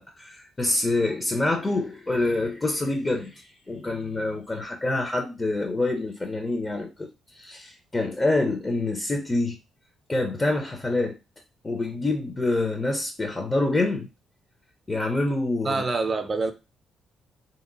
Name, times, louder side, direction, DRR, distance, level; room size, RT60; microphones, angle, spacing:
voice 1, 0.0-7.1 7.3-9.6 10.1-11.2 11.6-14.1 14.9-15.8, left 2 dB, 30° left, 0.8 m, -26 dB
voice 2, 15.6-16.5, right 3 dB, 40° right, 0.6 m, -26 dB
3.6 x 2.9 x 2.6 m
hypercardioid pair, 45°, 0 cm